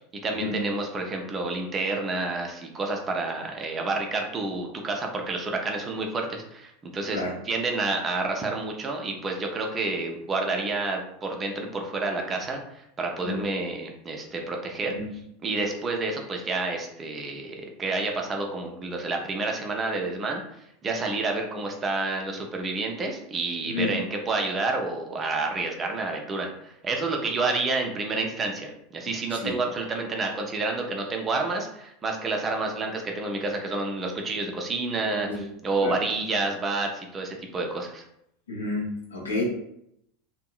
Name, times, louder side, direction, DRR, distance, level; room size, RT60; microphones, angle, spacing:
voice 1, 0.2-14.9 15.4-20.4 20.8-38.0, right 3 dB, 25° right, 2 dB, 0.6 m, -29 dB
voice 2, 23.6-24.0 29.3-29.5 35.3-35.4 35.8-36.0 38.5-39.4, left 3 dB, 75° left, -2 dB, 0.9 m, -30 dB
2.9 x 2.6 x 2.4 m, 0.75 s
figure-of-eight pair, 80°, 0 cm